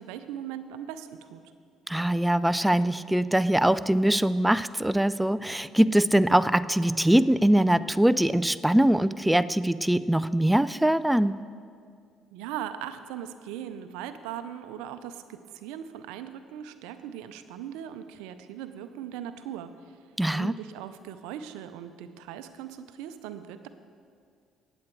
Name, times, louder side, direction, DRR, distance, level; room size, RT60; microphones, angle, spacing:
voice 1, 0.0-1.4 12.3-20.0 20.3-23.7, right 10 dB, 80° right, 11 dB, 0.6 m, -39 dB
voice 2, 1.9-11.4 20.2-20.5, right 1 dB, 5° right, 16 dB, 0.3 m, -22 dB
19.0 x 7.9 x 4.6 m, 2.3 s
hypercardioid pair, 55°, 0 cm